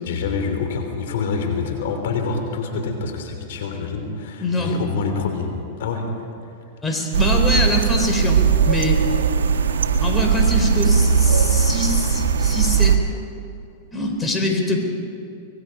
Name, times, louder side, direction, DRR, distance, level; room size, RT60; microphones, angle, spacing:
voice 1, 0.0-6.3, left 5 dB, 70° left, 5 dB, 3.2 m, -26 dB
voice 2, 4.4-4.7 6.8-9.0 10.0-13.0 13.9-14.8, left 1 dB, 15° left, 2 dB, 4.1 m, -23 dB
sound 1, 7.1-13.0, right 6 dB, 85° right, 1.4 m, -18 dB
25.0 x 20.5 x 5.3 m, 2.7 s
hypercardioid pair, 115°, 0 cm